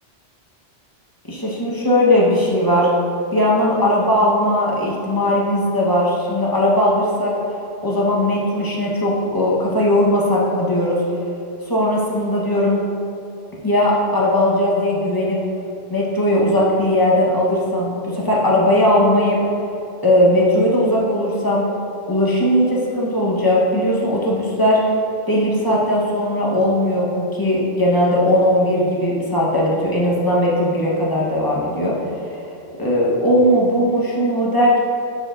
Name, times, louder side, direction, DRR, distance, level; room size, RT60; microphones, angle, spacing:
voice 1, 1.3-2.9 3.3-7.3 7.8-11.0 11.7-12.9 13.6-15.4 15.9-19.4 20.0-21.7 22.1-24.8 25.3-31.9 32.3-32.4 32.8-34.8, left 1 dB, 20° left, -5 dB, 1.0 m, -18 dB
11.0 x 4.8 x 2.6 m, 2.8 s
omnidirectional pair, 1.2 m